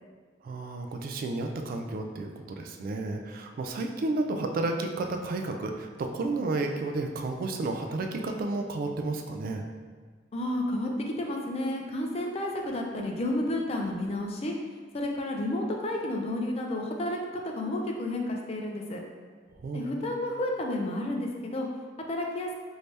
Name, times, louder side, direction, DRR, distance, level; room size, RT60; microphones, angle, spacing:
voice 1, 0.4-9.7 19.5-19.9, right 2 dB, 50° right, 4 dB, 0.3 m, -32 dB
voice 2, 10.3-10.9 11.2-14.6 14.9-17.2 17.4-19.0 19.7-21.7 22.1-22.5, left 1 dB, 35° left, 1 dB, 0.4 m, -31 dB
3.2 x 2.7 x 3.2 m, 1.5 s
head